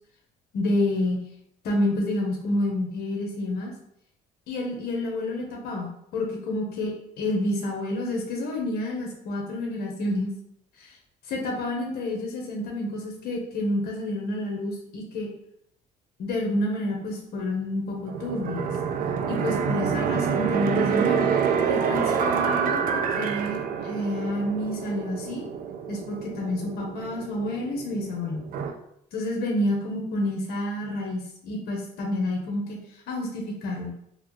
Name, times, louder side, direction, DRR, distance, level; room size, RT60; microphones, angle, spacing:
voice 1, 0.5-1.2 1.6-3.7 4.5-10.3 11.2-15.3 16.2-18.7 19.3-21.3 21.7-25.5 25.9-28.4 29.1-32.8 33.1-34.0, left 1 dB, 65° left, 0 dB, 0.9 m, -29 dB
sound 1, 18.1-28.7, right 7 dB, 60° right, 0.4 m, -27 dB
4.1 x 2.1 x 3.0 m, 0.73 s
cardioid pair, 110°, 17 cm